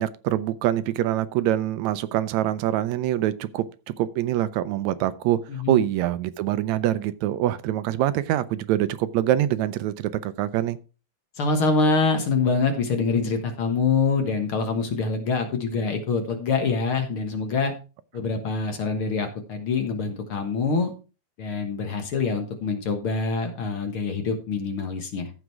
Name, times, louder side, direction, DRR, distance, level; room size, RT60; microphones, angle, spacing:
voice 1, 0.0-3.7 4.0-5.4 5.7-10.8, right 12 dB, 80° right, 1.8 m, -24 dB
voice 2, 5.5-5.8 11.4-17.7 18.1-20.9 21.4-25.3, left 4 dB, 50° left, 2.0 m, -25 dB
14.5 x 5.0 x 4.6 m
omnidirectional pair, 3.4 m